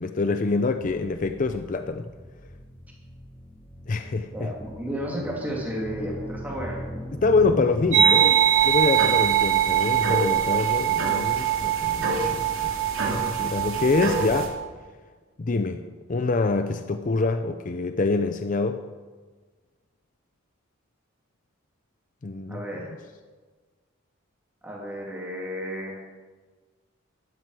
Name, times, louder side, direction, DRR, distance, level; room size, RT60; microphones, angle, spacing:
voice 1, 0.0-2.1 3.9-4.5 7.1-12.7 13.1-14.5 15.4-18.8 22.2-22.6, left 3 dB, 40° left, 8 dB, 0.5 m, -26 dB
sound 1, 0.7-7.9, equal, 10° left, 2.2 m, -39 dB
voice 2, 4.3-6.8 22.5-22.9 24.6-26.0, equal, 10° right, -3 dB, 2.4 m, -33 dB
sound 2, 7.9-14.5, right 8 dB, 75° right, 2.8 m, -22 dB
14.0 x 12.0 x 4.8 m, 1.4 s
head